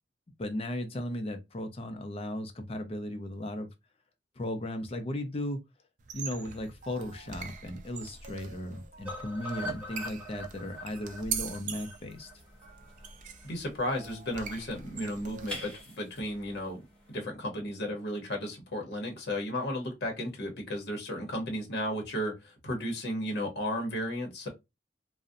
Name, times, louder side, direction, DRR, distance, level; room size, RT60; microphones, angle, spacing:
voice 1, 0.4-3.7 4.4-5.6 6.1-12.3, left 1 dB, 35° left, 0.5 m, -36 dB
sound 1, 6.0-15.8, right 6 dB, 45° right, 0.4 m, -43 dB
sound 2, 9.0-13.1 13.4-13.5 13.8-13.9 14.2-14.3, equal, 10° right, 0.9 m, -42 dB
sound 3, 9.5-17.3, equal, 5° left, 1.4 m, -51 dB
voice 2, 13.4-16.8 17.1-24.5, left 1 dB, 60° left, 0.8 m, -34 dB
2.6 x 2.0 x 2.4 m
head